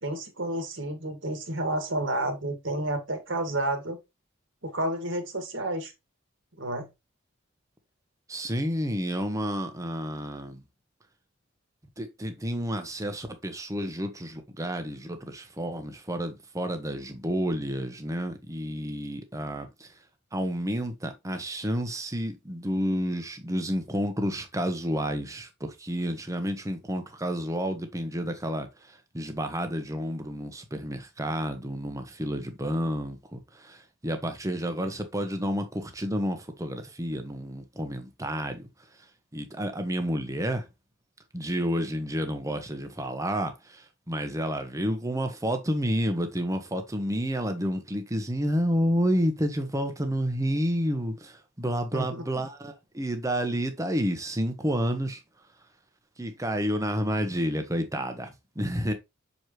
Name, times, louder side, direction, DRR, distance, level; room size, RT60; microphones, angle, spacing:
voice 1, 0.0-4.0 4.6-5.9 6.6-6.9 51.9-52.5, right 1 dB, 65° right, 1.9 m, -30 dB
voice 2, 8.3-10.6 12.0-19.9 20.3-38.7 39.3-40.7 41.3-55.2 56.2-58.9, equal, 15° right, 1.0 m, -30 dB
6.5 x 4.6 x 3.1 m
head